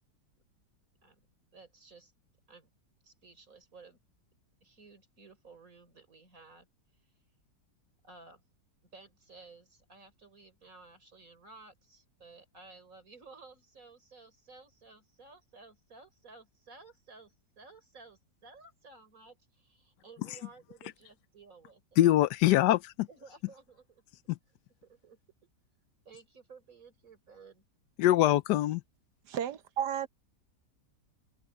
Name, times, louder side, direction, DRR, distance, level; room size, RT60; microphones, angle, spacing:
voice 1, 1.5-2.1 2.5-2.7 3.0-4.0 4.6-6.7 8.0-8.4 8.9-22.0 23.1-24.0 24.8-25.2 26.0-27.6, right 3 dB, 50° right, 5.1 m, -55 dB
voice 2, 22.0-23.1 24.3-24.4 28.0-28.8, left 14 dB, 80° left, 1.2 m, -23 dB
voice 3, 29.3-30.1, right 9 dB, 75° right, 1.5 m, -33 dB
omnidirectional pair, 1.8 m